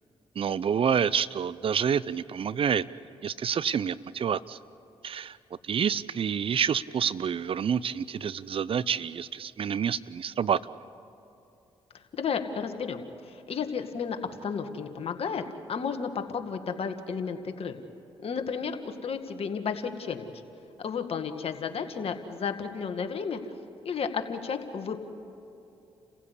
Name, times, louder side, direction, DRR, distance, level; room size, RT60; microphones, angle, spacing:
voice 1, 0.4-2.8 3.2-4.6 5.0-5.4 5.6-10.7, right 7 dB, 55° right, 18 dB, 0.6 m, -28 dB
voice 2, 12.1-15.4 15.7-17.8 18.2-20.3 20.8-23.4 23.8-25.0, left 6 dB, 60° left, 6 dB, 1.9 m, -32 dB
29.0 x 15.5 x 8.4 m, 2.8 s
supercardioid pair, 50°, 11 cm